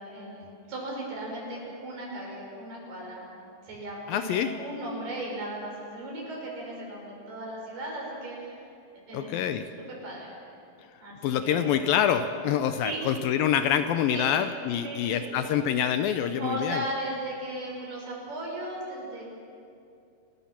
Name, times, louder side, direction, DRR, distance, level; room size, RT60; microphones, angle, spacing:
voice 1, 0.0-3.3 3.7-8.6 9.1-9.4 9.9-10.3 11.0-11.1 11.4-11.8 12.8-13.1 14.1-14.3 14.8-15.4 16.4-19.3, right 1 dB, 75° right, -2 dB, 7.6 m, -36 dB
voice 2, 4.1-4.5 9.1-9.7 11.2-16.8, left 9 dB, 80° left, 9 dB, 2.2 m, -26 dB
29.0 x 20.0 x 5.9 m, 2.5 s
omnidirectional pair, 4.6 m